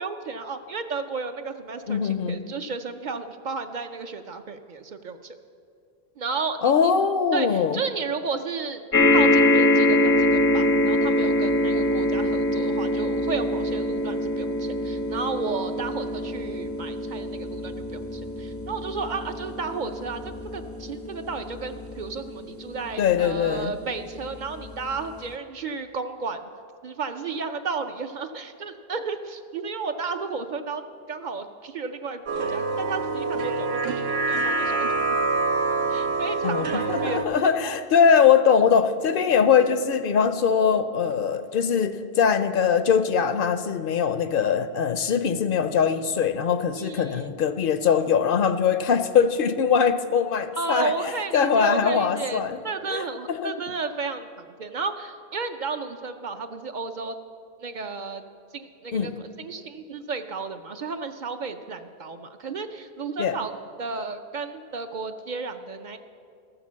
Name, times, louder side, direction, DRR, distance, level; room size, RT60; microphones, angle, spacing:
voice 1, 0.0-5.4 6.2-6.7 7.3-8.8 9.1-26.4 26.8-30.8 31.1-35.2 35.9-37.3 46.8-47.3 50.5-54.3 54.6-57.1 57.6-58.2 58.5-63.5 63.8-66.0, right 4 dB, 55° right, 8 dB, 0.6 m, -33 dB
voice 2, 1.9-2.4 6.6-7.8 23.0-23.7 36.4-52.6 52.9-53.5 58.9-59.1 63.2-63.3, left 7 dB, 65° left, 10 dB, 0.7 m, -22 dB
sound 1, 8.9-23.5 24.2-24.3 24.6-24.7, left 1 dB, 20° left, 0.5 m, -24 dB
sound 2, 32.3-37.2, right 3 dB, 80° right, 1.0 m, -26 dB
13.5 x 6.8 x 7.2 m, 2.3 s
omnidirectional pair, 1.0 m